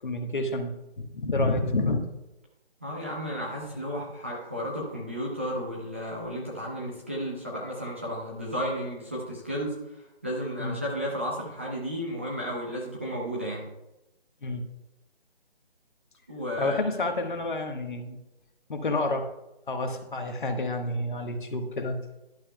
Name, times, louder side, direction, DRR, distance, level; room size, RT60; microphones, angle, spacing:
voice 1, 0.0-2.1 10.6-10.8 14.4-14.6 16.6-18.2 18.7-19.3 19.7-22.0, left 2 dB, 50° left, 5 dB, 1.3 m, -29 dB
voice 2, 2.8-13.7 16.3-16.8, equal, 10° right, -5 dB, 0.6 m, -33 dB
12.5 x 11.0 x 2.2 m, 0.95 s
figure-of-eight pair, 155°, 32 cm